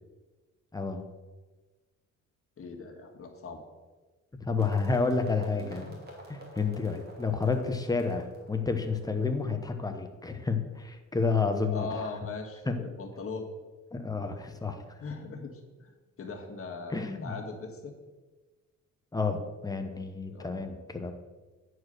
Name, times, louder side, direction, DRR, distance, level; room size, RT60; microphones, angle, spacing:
voice 1, 0.7-1.0 4.4-5.9 6.3-11.9 12.7-12.8 13.9-15.0 16.9-17.3 19.1-21.1, left 4 dB, 10° left, 6 dB, 1.1 m, -30 dB
voice 2, 2.6-3.6 5.5-5.9 11.7-13.5 14.4-17.9 20.3-20.6, left 4 dB, 45° left, 2 dB, 1.8 m, -40 dB
sound 1, 4.6-10.5, right 1 dB, 30° right, 2.7 m, -51 dB
9.3 x 4.8 x 6.6 m, 1.2 s
cardioid pair, 90°, 30 cm